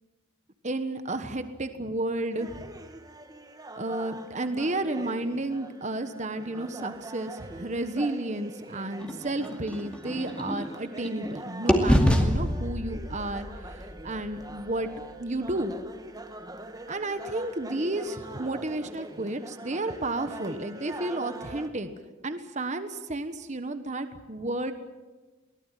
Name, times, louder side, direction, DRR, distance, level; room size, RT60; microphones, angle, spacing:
voice 1, 0.6-2.7 3.7-14.9 15.2-15.8 16.9-21.9 22.2-24.7, right 2 dB, 35° right, 10 dB, 1.2 m, -32 dB
sound 1, 2.3-21.7, right 2 dB, 20° right, 1.4 m, -43 dB
sound 2, 9.0-11.3 11.7-15.7, equal, 5° left, 2.3 m, -28 dB
23.5 x 18.5 x 9.1 m, 1.3 s
head